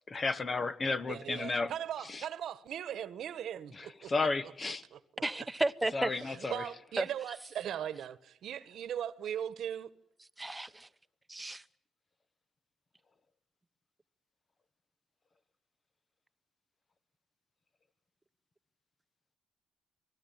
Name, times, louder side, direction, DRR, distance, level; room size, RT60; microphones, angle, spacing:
voice 1, 0.1-1.7 2.1-2.2 3.7-4.8 5.9-6.6, left 3 dB, 35° left, 1.4 m, -33 dB
voice 2, 1.1-4.3 4.9-5.0 5.4-5.5 6.3-9.9, right 10 dB, 70° right, 1.4 m, -39 dB
voice 3, 5.2-6.1 7.0-7.1 10.4-10.9 11.3-11.6, right 2 dB, 10° right, 1.1 m, -32 dB
27.5 x 20.0 x 9.0 m
cardioid pair, 90°, 0 cm